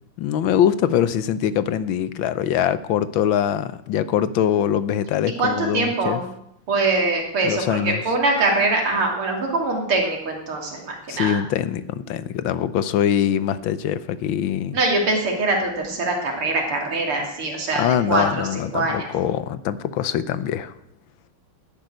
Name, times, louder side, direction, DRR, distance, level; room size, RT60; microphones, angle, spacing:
voice 1, 0.2-6.2 7.4-8.0 11.1-14.8 17.7-20.7, left 9 dB, 70° left, 15 dB, 1.5 m, -23 dB
voice 2, 5.4-6.3 6.7-11.4 14.7-19.1, right 2 dB, 85° right, 1 dB, 3.7 m, -23 dB
12.0 x 10.5 x 9.3 m, 0.79 s
omnidirectional pair, 2.3 m